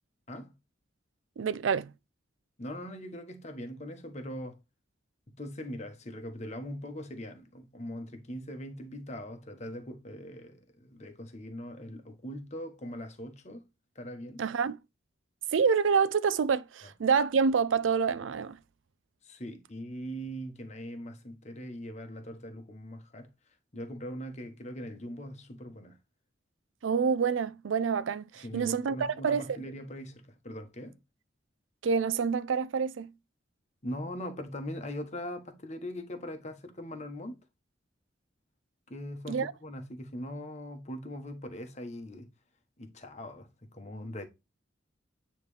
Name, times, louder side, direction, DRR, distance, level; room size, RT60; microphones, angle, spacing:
voice 1, 1.4-1.9 14.4-14.8 15.5-18.6 26.8-29.6 31.8-33.1 39.3-39.5, right 6 dB, 90° right, 0.4 m, -27 dB
voice 2, 2.6-4.6 5.4-13.7 13.9-14.4 19.2-23.3 23.7-26.0 28.4-31.0 33.8-37.4 38.9-42.3 42.8-44.3, equal, 40° left, 1.1 m, -41 dB
9.2 x 3.2 x 3.2 m
head